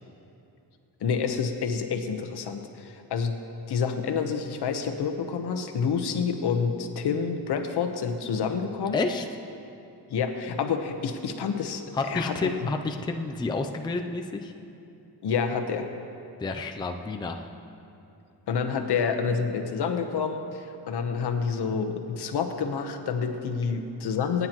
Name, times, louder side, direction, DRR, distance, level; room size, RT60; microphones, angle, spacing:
voice 1, 1.0-3.4 3.7-9.0 10.1-12.5 15.2-15.9 18.5-24.5, left 6 dB, 75° left, 5 dB, 1.1 m, -28 dB
voice 2, 8.9-9.3 11.9-14.5 16.4-17.5, left 3 dB, 10° left, 4 dB, 0.4 m, -30 dB
26.0 x 9.5 x 3.0 m, 2.8 s
wide cardioid pair, 160°, 40 cm